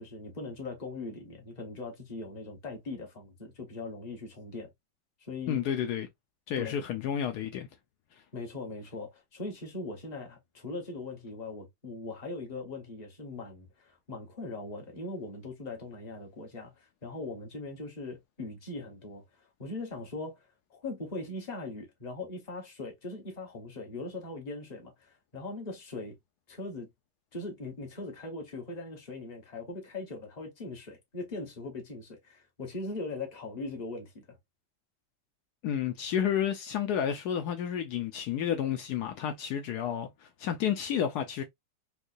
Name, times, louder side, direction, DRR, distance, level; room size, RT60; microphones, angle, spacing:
voice 1, 0.0-4.7 5.2-5.6 6.6-6.8 8.3-26.2 26.5-26.9 27.3-34.4, left 2 dB, 25° left, 0.9 m, -40 dB
voice 2, 5.5-6.1 6.5-7.7 35.6-41.4, left 9 dB, 90° left, 0.8 m, -31 dB
4.6 x 2.3 x 2.5 m
omnidirectional pair, 2.3 m